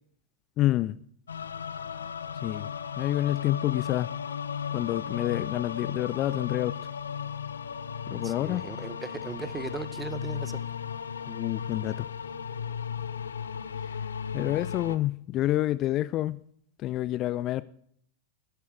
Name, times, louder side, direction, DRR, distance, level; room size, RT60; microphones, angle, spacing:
voice 1, 0.6-1.0 2.4-2.7 3.0-4.1 4.7-6.8 8.1-8.6 11.3-12.1 14.3-16.4 16.8-17.6, left 15 dB, 35° left, 0.4 m, -28 dB
sound 1, 1.3-15.0, left 7 dB, 70° left, 0.7 m, -35 dB
voice 2, 8.2-10.6, right 4 dB, 15° right, 0.8 m, -38 dB
12.5 x 10.5 x 4.5 m
figure-of-eight pair, 90°, 0 cm